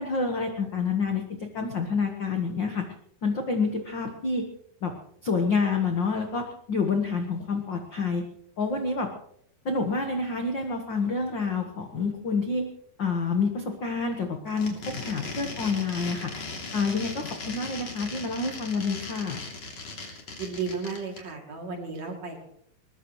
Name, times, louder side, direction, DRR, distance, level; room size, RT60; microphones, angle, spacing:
voice 1, 0.0-2.9 3.2-4.5 4.8-4.9 5.2-8.2 8.6-9.1 9.6-12.7 13.0-16.5 16.7-19.4, left 4 dB, 65° left, 4 dB, 1.1 m, -28 dB
sound 1, 14.5-21.2, left 3 dB, 45° left, 3.9 m, -38 dB
voice 2, 20.4-22.4, right 5 dB, 50° right, 2 dB, 3.7 m, -34 dB
21.5 x 20.5 x 3.1 m, 0.67 s
omnidirectional pair, 4.3 m